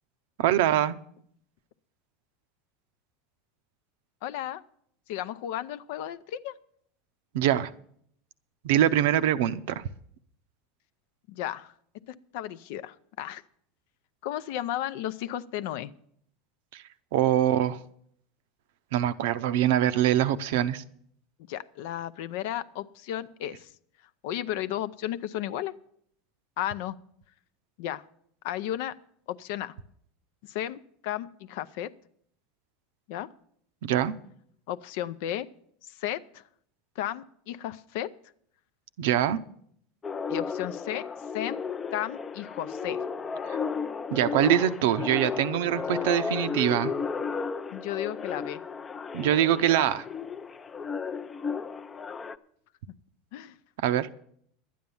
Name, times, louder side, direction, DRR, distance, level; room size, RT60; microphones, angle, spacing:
voice 1, 0.4-1.0 7.3-7.7 8.6-9.8 16.7-16.8 17.1-17.8 18.9-20.8 33.8-34.1 39.0-39.4 44.1-46.9 49.1-50.0 53.8-54.1, right 11 dB, 75° right, 0.6 m, -24 dB
voice 2, 4.2-4.6 5.1-6.6 11.3-11.7 12.1-13.4 14.2-15.9 21.5-23.7 24.2-25.7 26.6-27.0 27.8-28.0 28.4-28.9 29.3-29.7 30.4-31.9 33.1-33.3 34.7-35.5 35.8-36.4 37.0-38.1 40.3-41.1 41.3-41.6 41.9-43.0 47.7-48.6 53.3-53.5, left 12 dB, 70° left, 0.6 m, -34 dB
sound 1, 40.0-52.4, left 5 dB, 20° left, 0.5 m, -34 dB
11.5 x 9.3 x 7.0 m
supercardioid pair, 125°, 0 cm